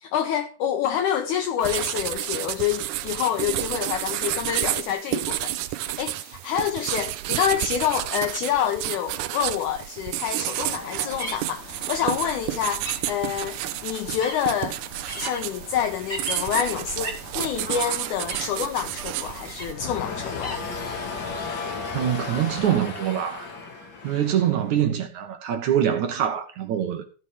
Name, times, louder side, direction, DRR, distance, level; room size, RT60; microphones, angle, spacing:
voice 1, 0.0-14.8 15.2-20.6, left 9 dB, 80° left, 1.8 m, -27 dB
sound 1, 1.6-19.7, right 15 dB, 90° right, 1.7 m, -31 dB
sound 2, 10.5-21.5, left 1 dB, 20° left, 2.9 m, -39 dB
sound 3, 19.7-24.9, left 4 dB, 50° left, 1.2 m, -34 dB
voice 2, 21.9-23.5 24.0-27.0, right 10 dB, 70° right, 2.1 m, -24 dB
14.5 x 5.9 x 4.8 m
omnidirectional pair, 4.2 m